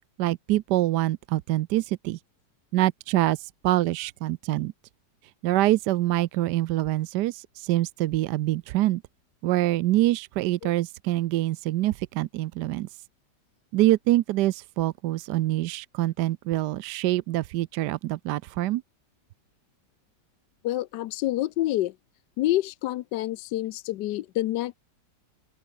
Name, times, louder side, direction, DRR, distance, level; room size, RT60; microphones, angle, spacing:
voice 1, 0.2-2.2 2.7-4.7 5.4-9.0 9.4-12.9 13.7-18.8, right 16 dB, 75° right, 1.1 m, -25 dB
voice 2, 20.6-21.9 22.4-24.8, left 15 dB, 75° left, 1.2 m, -27 dB
open air
omnidirectional pair, 1.9 m